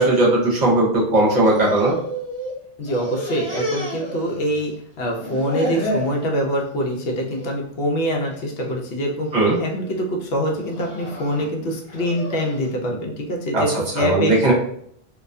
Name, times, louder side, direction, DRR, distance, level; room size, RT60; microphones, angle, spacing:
voice 1, 0.0-1.9 9.3-9.6 13.5-13.6 14.0-14.5, right 2 dB, 50° right, -4 dB, 0.7 m, -17 dB
sound 1, 1.5-2.5 2.8-4.7 5.0-6.1 6.6-7.0 7.3-7.5 8.3-8.7 9.2-9.6 10.5-12.7, equal, 15° left, 0.8 m, -30 dB
voice 2, 2.8-14.3, equal, 70° left, 0 dB, 0.8 m, -24 dB
2.3 x 2.1 x 2.5 m, 0.67 s
omnidirectional pair, 1.1 m